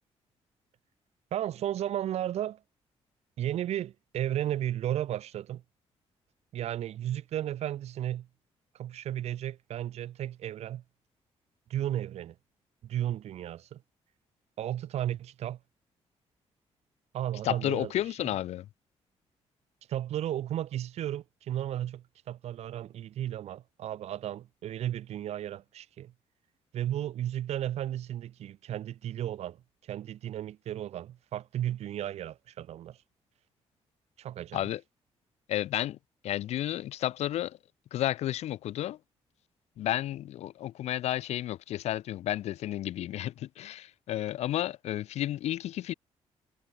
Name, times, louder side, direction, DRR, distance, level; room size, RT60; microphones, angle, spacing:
voice 1, 1.3-2.6 3.4-5.6 6.5-8.3 8.8-10.8 11.7-12.3 12.8-13.8 14.6-15.6 17.1-17.9 19.9-26.1 26.7-29.6 29.9-33.0 34.2-34.6, right 11 dB, 75° right, 1.5 m, -34 dB
voice 2, 17.4-18.7 34.5-34.8 35.5-36.0 36.2-37.6 37.9-39.0 39.8-45.9, left 13 dB, 80° left, 0.6 m, -32 dB
cardioid pair, 150°, 11 cm